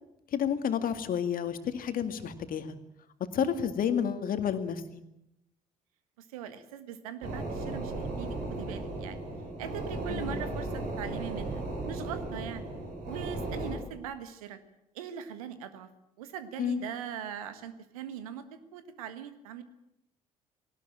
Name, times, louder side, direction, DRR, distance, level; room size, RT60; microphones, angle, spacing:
voice 1, 0.3-2.8 3.3-5.0 10.1-10.4 16.6-16.9, left 8 dB, 50° left, 8 dB, 2.2 m, -30 dB
voice 2, 3.4-3.7 6.3-9.2 9.6-12.6 13.1-14.6 14.9-15.9 16.2-19.6, right 9 dB, 75° right, 11 dB, 1.6 m, -41 dB
sound 1, 7.2-13.7, right 2 dB, 55° right, 7.1 m, -36 dB
20.0 x 18.0 x 9.0 m, 0.85 s
figure-of-eight pair, 50°, 19 cm